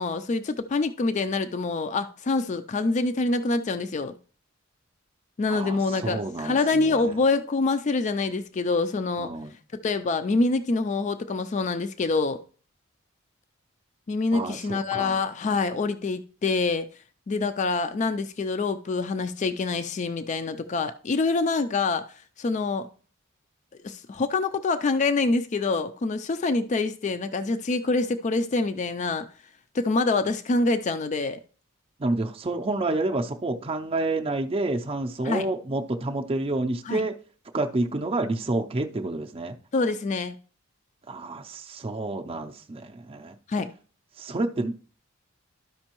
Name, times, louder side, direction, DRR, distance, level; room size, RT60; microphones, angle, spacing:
voice 1, 0.0-4.1 5.4-9.3 9.8-12.4 14.1-16.9 17.3-22.1 22.4-22.9 23.8-29.2 29.7-31.4 35.2-35.5 36.9-37.0 39.7-40.4 43.5-43.7, left 3 dB, 35° left, 0.3 m, -26 dB
voice 2, 5.5-7.2 9.2-9.5 14.3-15.2 32.0-37.1 37.5-39.5 41.1-43.3 44.2-44.9, right 2 dB, 25° right, 0.5 m, -29 dB
12.5 x 5.3 x 2.9 m
head